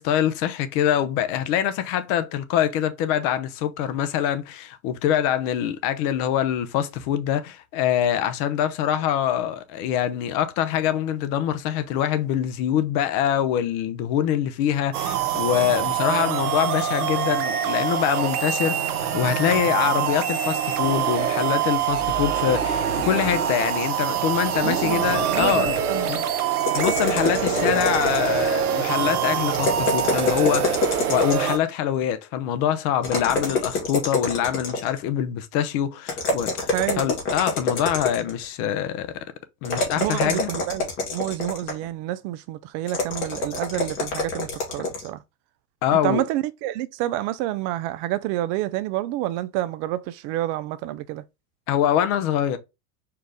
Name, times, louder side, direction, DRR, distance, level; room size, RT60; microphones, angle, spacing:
voice 1, 0.0-25.7 26.1-26.2 26.7-39.1 39.6-40.5 45.8-46.2 51.7-52.6, left 10 dB, 50° left, 0.8 m, -24 dB
sound 1, 14.9-31.6, right 9 dB, 85° right, 0.9 m, -25 dB
voice 2, 24.6-26.3 36.7-37.1 39.9-45.2 46.0-51.2, right 15 dB, 45° right, 0.4 m, -29 dB
sound 2, 26.6-28.5 29.5-31.6 33.0-35.0 36.1-38.4 39.6-41.9 42.9-45.1, left 3 dB, 80° left, 1.9 m, -26 dB
4.6 x 2.5 x 3.3 m
hypercardioid pair, 100°, 44 cm